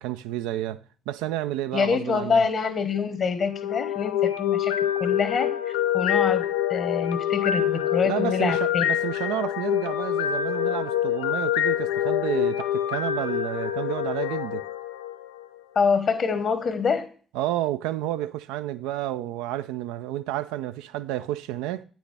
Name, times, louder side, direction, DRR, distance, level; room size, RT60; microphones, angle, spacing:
voice 1, 0.0-2.4 8.0-14.6 17.3-21.8, right 14 dB, 80° right, 0.3 m, -30 dB
voice 2, 1.7-5.5 5.9-6.4 6.7-8.8 15.7-17.1, left 5 dB, 55° left, 1.1 m, -25 dB
sound 1, 3.5-15.6, left 11 dB, 90° left, 0.3 m, -26 dB
8.5 x 6.0 x 3.3 m
hypercardioid pair, 55°, 0 cm